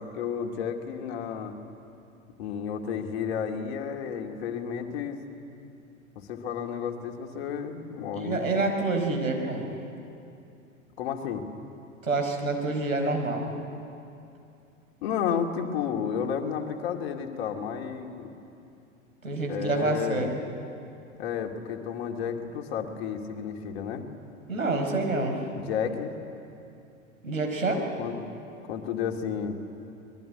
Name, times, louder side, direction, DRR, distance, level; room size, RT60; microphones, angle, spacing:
voice 1, 0.0-1.5 2.4-5.2 6.2-8.5 11.0-11.4 15.0-18.3 19.5-20.3 21.2-24.1 25.7-26.1 28.0-28.2 28.7-29.6, left 7 dB, 50° left, 4 dB, 2.4 m, -32 dB
voice 2, 8.1-9.7 12.0-13.5 19.2-20.4 24.5-25.4 27.2-27.8, right 3 dB, 80° right, 2 dB, 4.9 m, -27 dB
25.0 x 21.5 x 10.0 m, 2.7 s
figure-of-eight pair, 95°, 41 cm